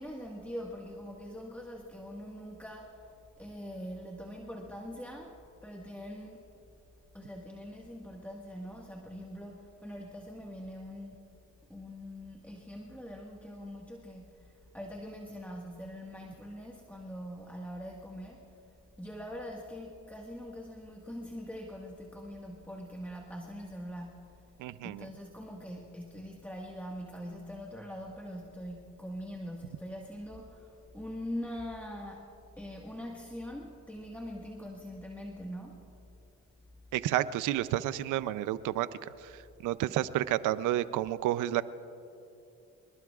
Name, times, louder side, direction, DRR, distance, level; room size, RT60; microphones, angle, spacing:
voice 1, 0.0-3.1 3.4-6.5 7.1-11.2 11.7-18.6 19.0-24.4 24.8-35.9, equal, 5° left, -1 dB, 1.6 m, -43 dB
voice 2, 24.6-25.1 36.9-41.6, right 13 dB, 90° right, 15 dB, 0.6 m, -31 dB
27.0 x 20.0 x 2.4 m, 2.7 s
cardioid pair, 90°, 30 cm